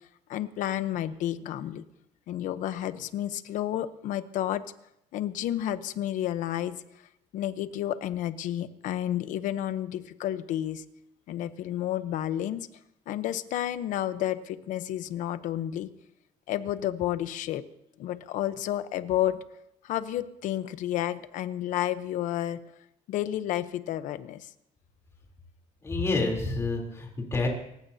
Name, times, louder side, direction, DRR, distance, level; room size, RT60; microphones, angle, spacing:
voice 1, 0.3-1.8 2.3-4.6 5.1-6.8 7.3-10.8 11.3-12.7 13.1-15.9 16.5-17.6 18.0-19.4 19.8-22.6 23.1-24.5, left 12 dB, 75° left, 13 dB, 0.9 m, -31 dB
voice 2, 25.8-27.5, left 3 dB, 20° left, 0 dB, 3.4 m, -28 dB
29.0 x 15.5 x 2.8 m, 0.81 s
cardioid pair, 150°, 14 cm